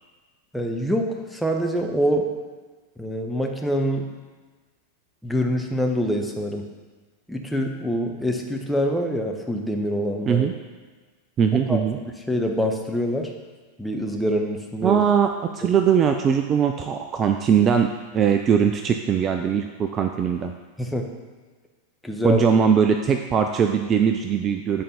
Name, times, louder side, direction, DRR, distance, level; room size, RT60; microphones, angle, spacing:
voice 1, 0.5-2.3 3.0-4.0 5.2-6.6 7.3-10.5 11.7-13.3 13.8-15.0 20.8-21.1 22.0-22.5, equal, 5° left, 2 dB, 0.9 m, -25 dB
voice 2, 11.4-12.0 14.8-15.3 15.5-17.9 18.1-20.5 22.2-24.8, right 7 dB, 25° right, 5 dB, 0.4 m, -20 dB
8.9 x 4.4 x 5.1 m, 1.4 s
figure-of-eight pair, 90°, 0 cm